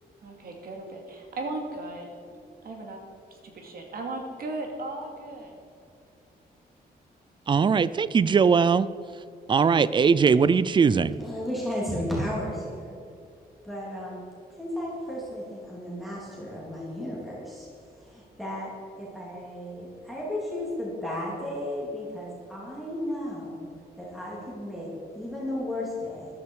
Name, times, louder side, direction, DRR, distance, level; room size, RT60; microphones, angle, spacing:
voice 1, 0.2-2.1 2.6-3.0 3.4-5.5, right 2 dB, 65° right, 2 dB, 2.5 m, -36 dB
voice 2, 7.5-8.9 9.5-11.2, right 6 dB, 30° right, 17 dB, 0.4 m, -20 dB
voice 3, 11.2-13.0 13.6-14.2 14.6-17.7 18.0-18.7 19.0-23.7 24.0-24.9 25.1-26.3, left 1 dB, ahead, -5 dB, 3.0 m, -34 dB
14.0 x 12.0 x 4.7 m, 2.5 s
wide cardioid pair, 155°, 16 cm